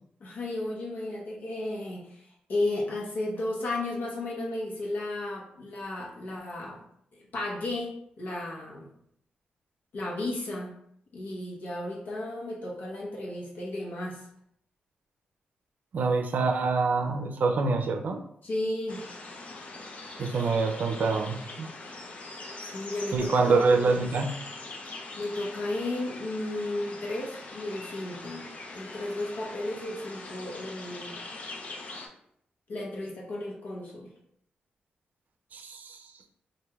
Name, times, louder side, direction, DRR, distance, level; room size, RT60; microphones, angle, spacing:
voice 1, 0.2-2.2 2.5-6.8 7.1-8.9 9.9-10.7 11.1-14.2 18.4-19.0 22.7-23.5 25.2-28.4 28.7-31.2 32.7-34.1, left 2 dB, 70° left, -3 dB, 1.0 m, -34 dB
voice 2, 15.9-18.2 20.2-21.7 23.1-24.3 35.5-36.0, right 4 dB, 65° right, 5 dB, 0.5 m, -25 dB
sound 1, 18.9-32.1, left 2 dB, 45° left, 0.6 m, -42 dB
3.1 x 2.6 x 3.4 m, 0.70 s
cardioid pair, 110°, 3 cm